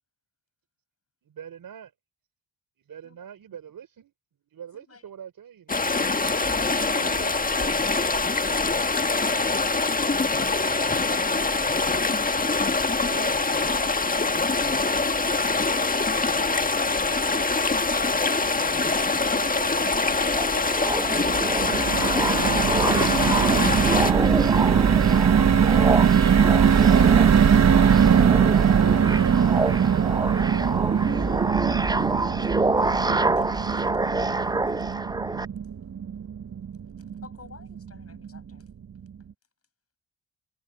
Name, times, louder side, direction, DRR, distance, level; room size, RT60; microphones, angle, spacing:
voice 1, 1.2-1.9 2.9-4.1 4.5-5.9 6.7-7.9 19.2-22.2, right 9 dB, 65° right, 5.2 m, -45 dB
sound 1, 5.7-24.1, left 3 dB, 20° left, 1.5 m, -24 dB
sound 2, 20.2-35.4, right 2 dB, 10° right, 0.7 m, -27 dB
sound 3, 21.0-37.4 37.8-37.9 38.1-38.4, right 7 dB, 45° right, 1.2 m, -21 dB
voice 2, 33.4-33.9 34.4-34.5 37.2-38.6, left 4 dB, 40° left, 7.8 m, -52 dB
supercardioid pair, 55°, 37 cm